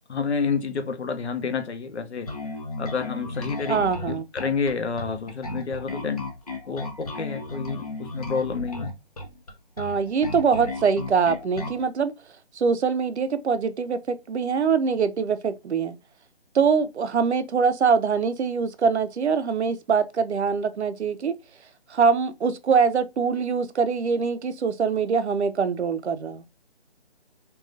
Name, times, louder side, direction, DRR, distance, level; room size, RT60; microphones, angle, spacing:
voice 1, 0.1-2.3 2.8-6.3 6.6-8.9, left 5 dB, 85° left, 0.7 m, -29 dB
Bass guitar, 2.3-11.8, left 2 dB, 35° left, 0.6 m, -34 dB
voice 2, 3.7-4.2 9.8-12.1 12.6-15.9 16.5-21.3 21.9-26.4, right 5 dB, 85° right, 0.6 m, -23 dB
3.6 x 2.3 x 2.5 m
figure-of-eight pair, 160°, 32 cm